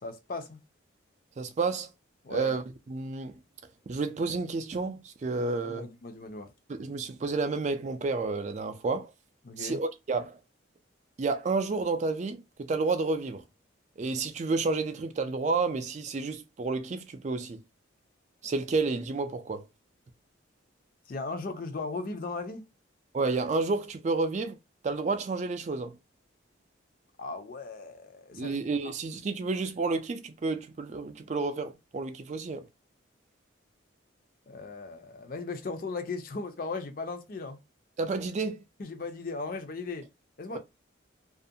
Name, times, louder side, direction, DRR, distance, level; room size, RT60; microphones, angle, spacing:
voice 1, 0.0-0.6 2.2-2.5 5.6-6.5 9.4-9.8 21.1-22.7 27.2-28.9 34.5-37.6 38.8-40.1 40.4-40.6, left 3 dB, 45° left, 0.4 m, -37 dB
voice 2, 1.4-1.9 2.3-3.4 3.9-5.9 6.7-9.1 9.6-10.4 11.2-13.4 14.0-17.6 18.4-19.6 23.1-24.6 24.8-26.0 28.3-32.7 38.0-38.6, right 3 dB, 35° right, 0.3 m, -30 dB
2.5 x 2.1 x 2.6 m
head